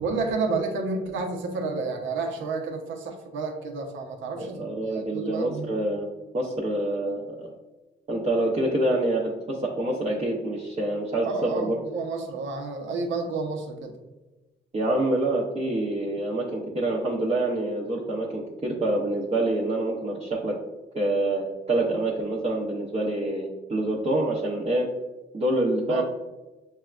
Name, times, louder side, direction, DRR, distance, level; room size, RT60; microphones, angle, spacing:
voice 1, 0.0-4.6 4.9-5.7 11.2-13.9 25.9-26.0, right 4 dB, 75° right, 3 dB, 0.7 m, -30 dB
voice 2, 4.4-6.1 6.3-7.5 8.1-11.8 14.7-20.5 20.9-24.9 25.3-26.0, right 1 dB, 30° right, -5 dB, 0.6 m, -26 dB
6.2 x 2.2 x 2.4 m, 1.1 s
cardioid pair, 90°, 20 cm